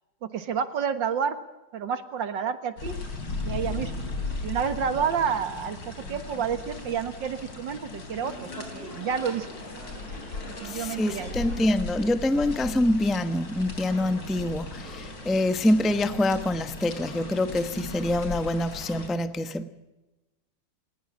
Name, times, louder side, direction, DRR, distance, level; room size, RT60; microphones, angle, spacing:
voice 1, 0.2-1.4 1.7-2.9 3.5-4.0 4.4-9.5 10.5-11.4, right 7 dB, 75° right, 10 dB, 2.2 m, -29 dB
sound 1, 2.8-19.1, left 3 dB, 70° left, 4.3 m, -37 dB
sound 2, 8.2-11.6, equal, 30° left, 4.2 m, -43 dB
voice 2, 10.6-19.7, left 1 dB, ahead, 10 dB, 0.5 m, -25 dB
19.5 x 19.5 x 7.3 m, 1.0 s
omnidirectional pair, 2.1 m